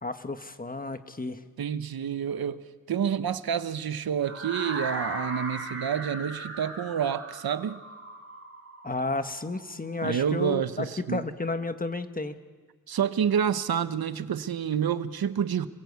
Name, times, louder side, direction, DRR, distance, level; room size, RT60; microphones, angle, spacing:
voice 1, 0.0-1.4 8.8-12.3, left 2 dB, 25° left, 1.4 m, -32 dB
voice 2, 1.6-2.6 2.9-7.8 10.0-11.2 12.9-15.7, right 8 dB, 85° right, 1.0 m, -28 dB
sound 1, 4.2-10.2, right 2 dB, 40° right, 4.9 m, -37 dB
28.5 x 21.5 x 8.3 m
wide cardioid pair, 105°, 36 cm